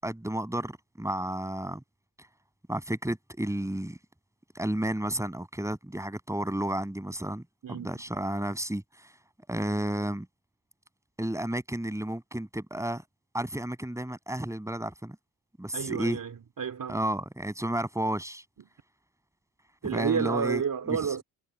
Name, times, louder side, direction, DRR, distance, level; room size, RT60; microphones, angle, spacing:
voice 1, 0.0-1.8 2.7-4.0 4.5-7.4 7.7-9.1 9.5-10.3 11.2-13.0 13.3-15.2 15.6-16.2 16.9-18.4 19.8-20.6 20.9-21.0, right 1 dB, 5° right, 7.2 m, -32 dB
voice 2, 15.7-17.0 19.8-21.2, right 7 dB, 40° right, 2.8 m, -30 dB
hypercardioid pair, 55°, 49 cm